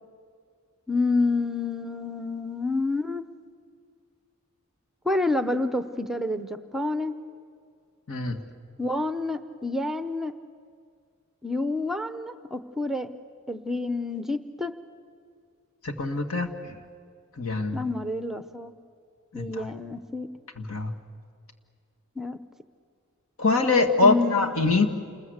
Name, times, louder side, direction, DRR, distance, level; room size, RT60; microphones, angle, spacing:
voice 1, 0.9-3.2 5.0-7.1 8.8-10.3 11.4-13.1 13.5-14.7 17.7-18.7 19.3-20.3 22.2-22.4 24.0-24.5, left 2 dB, ahead, 10 dB, 0.7 m, -28 dB
voice 2, 8.1-8.4 15.8-16.7 17.4-17.8 19.3-19.7 20.6-20.9 23.4-24.9, left 3 dB, 75° left, 4 dB, 1.9 m, -24 dB
28.5 x 21.0 x 8.0 m, 2.2 s
head